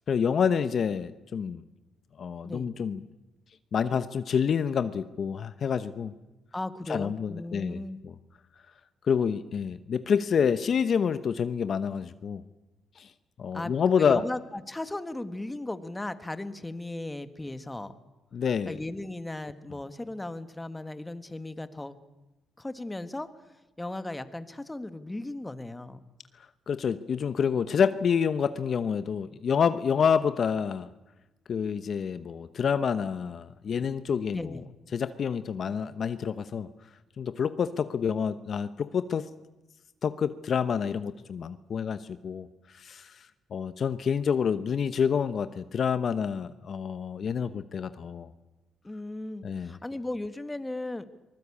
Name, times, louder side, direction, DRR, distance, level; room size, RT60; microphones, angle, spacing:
voice 1, 0.1-1.6 2.2-3.0 3.7-6.1 6.9-8.1 9.1-12.4 13.0-13.1 13.4-14.2 18.3-18.8 26.7-30.9 31.5-34.6 34.9-36.7 37.2-39.3 40.0-42.5 42.7-48.3 49.4-49.8, left 7 dB, 55° left, 12 dB, 0.9 m, -28 dB
voice 2, 6.5-8.0 13.5-17.9 18.7-21.9 22.6-23.3 23.8-26.0 34.3-34.6 48.8-51.0, left 2 dB, 15° left, 11 dB, 1.5 m, -36 dB
24.0 x 20.0 x 8.6 m, 1.0 s
cardioid pair, 90°, 0 cm